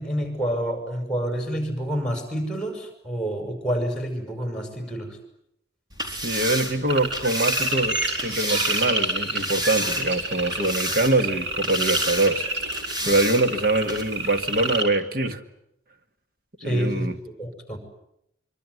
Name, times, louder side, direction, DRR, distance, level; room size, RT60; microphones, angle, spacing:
voice 1, 0.0-5.2 16.6-17.8, equal, 5° left, 6 dB, 6.0 m, -28 dB
sound 1, 5.9-8.9 9.3-10.2 10.5-11.3 11.6-12.3 12.7-13.4 13.9-14.0, equal, 20° right, 4.4 m, -30 dB
voice 2, 6.1-12.4 13.0-15.4 16.6-17.1, right 2 dB, 50° right, 8 dB, 2.0 m, -24 dB
sound 2, 6.9-14.8, right 2 dB, 80° right, 5.5 m, -29 dB
25.0 x 24.5 x 9.5 m, 0.78 s
head